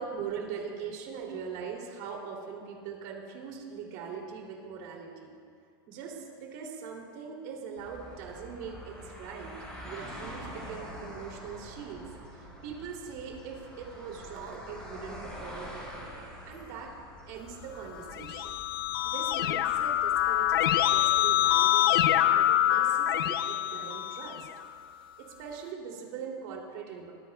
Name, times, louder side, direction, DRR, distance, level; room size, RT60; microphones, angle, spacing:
voice 1, 0.0-5.3 5.9-9.5 9.8-15.9 16.4-16.9 17.3-18.6 19.0-24.5 25.2-27.1, right 6 dB, 45° right, 0 dB, 2.9 m, -41 dB
sound 1, 7.8-21.6, equal, 10° left, 4.5 m, -46 dB
Keyboard (musical), 18.0-24.7, left 12 dB, 70° left, 0.6 m, -25 dB
23.0 x 16.5 x 2.3 m, 2.2 s
supercardioid pair, 175°, 12 cm